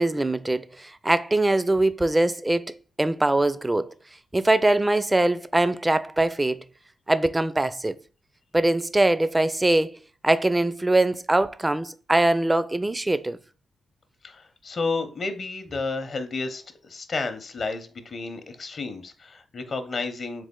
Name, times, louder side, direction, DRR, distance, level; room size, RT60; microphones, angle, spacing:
voice 1, 0.0-3.9 4.3-6.6 7.1-7.9 8.5-10.0 10.2-13.4, right 2 dB, 20° right, 0.4 m, -22 dB
voice 2, 14.2-20.5, left 3 dB, 55° left, 0.7 m, -31 dB
3.5 x 3.3 x 3.6 m
hypercardioid pair, 40°, 0 cm